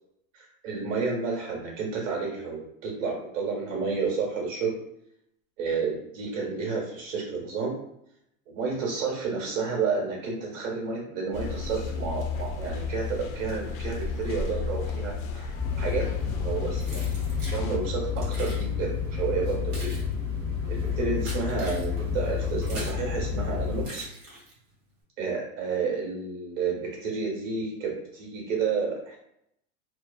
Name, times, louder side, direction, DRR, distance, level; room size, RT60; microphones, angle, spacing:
voice 1, 0.3-4.7 5.6-7.7 8.5-17.2 17.5-20.0 20.7-24.1 25.2-29.2, right 4 dB, 65° right, -1 dB, 1.2 m, -31 dB
sound 1, 11.3-17.8, left 4 dB, 80° left, 0.5 m, -33 dB
sound 2, 15.5-23.8, left 6 dB, 5° right, 0.5 m, -30 dB
Keys jangling, 16.8-17.6 18.2-18.6 19.4-23.1 23.8-24.7, right 1 dB, 35° right, 1.1 m, -42 dB
2.6 x 2.2 x 2.3 m, 0.77 s
supercardioid pair, 155°, 41 cm